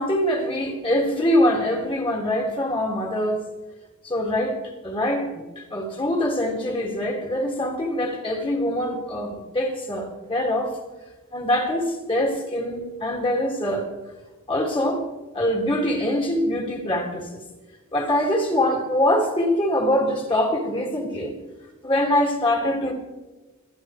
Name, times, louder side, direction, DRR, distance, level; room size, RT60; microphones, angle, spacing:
voice 1, 0.0-3.4 4.0-4.6 4.8-10.7 11.3-13.9 14.5-15.0 15.3-17.3 17.9-21.3 21.8-22.9, left 1 dB, 25° left, 2 dB, 2.2 m, -23 dB
28.5 x 10.5 x 3.2 m, 1.2 s
head